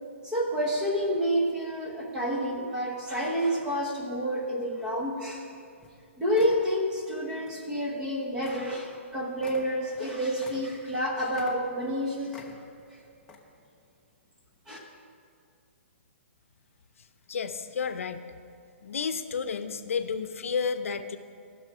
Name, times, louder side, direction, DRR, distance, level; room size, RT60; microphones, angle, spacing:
voice 1, 0.2-5.5 6.2-12.4 12.9-13.0 14.7-14.8, equal, 10° right, -1 dB, 0.9 m, -29 dB
sound 1, 5.4-5.5 5.8-6.0 6.3-6.7 7.4-7.6 7.9-8.0 8.4-8.7 8.9-9.0 9.4-11.0 11.3-12.0 12.3-12.9 13.2-13.4, left 4 dB, 5° left, 0.5 m, -48 dB
voice 2, 17.3-18.2 18.8-21.2, left 6 dB, 80° left, 10 dB, 0.6 m, -31 dB
15.0 x 6.1 x 4.8 m, 2.4 s
hypercardioid pair, 175°, 7 cm